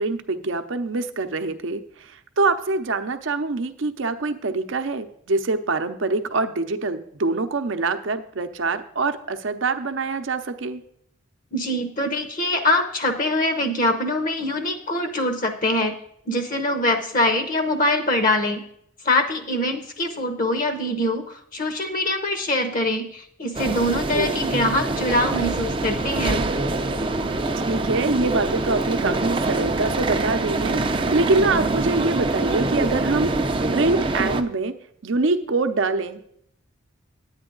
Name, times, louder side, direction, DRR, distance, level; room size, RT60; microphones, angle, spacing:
voice 1, 0.0-10.8 24.1-24.5 27.7-33.5 33.7-34.7 35.0-36.2, right 3 dB, 65° right, 9 dB, 0.7 m, -24 dB
voice 2, 11.5-16.0 16.3-18.6 19.0-26.4, left 1 dB, 40° left, 7 dB, 0.8 m, -23 dB
sound 1, 23.5-34.4, right 2 dB, 25° right, 0.5 m, -25 dB
10.5 x 8.9 x 3.9 m, 0.69 s
head